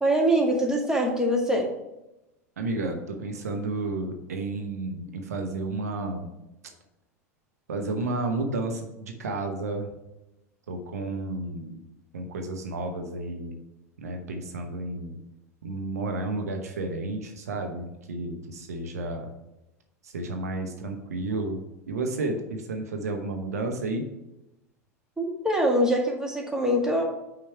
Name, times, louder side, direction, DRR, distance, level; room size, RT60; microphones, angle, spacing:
voice 1, 0.0-1.7 25.2-27.0, right 1 dB, 5° right, 0 dB, 1.9 m, -23 dB
voice 2, 2.6-6.3 7.7-9.9 10.7-11.8 12.1-13.5 14.0-15.2 15.6-19.3 20.0-24.1, right 2 dB, 75° right, 4 dB, 0.9 m, -32 dB
5.8 x 5.1 x 5.7 m, 0.94 s
figure-of-eight pair, 80°, 8 cm